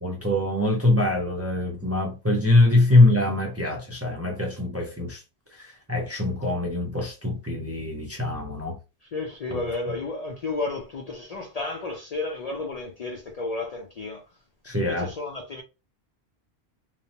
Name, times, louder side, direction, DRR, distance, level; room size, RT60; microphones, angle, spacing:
voice 1, 0.0-5.2 5.5-8.8 9.5-9.6 14.6-15.1, left 2 dB, 20° right, 0.4 m, -23 dB
voice 2, 9.0-14.2 14.8-15.6, left 3 dB, 55° left, 0.4 m, -32 dB
3.1 x 2.0 x 2.8 m
omnidirectional pair, 1.1 m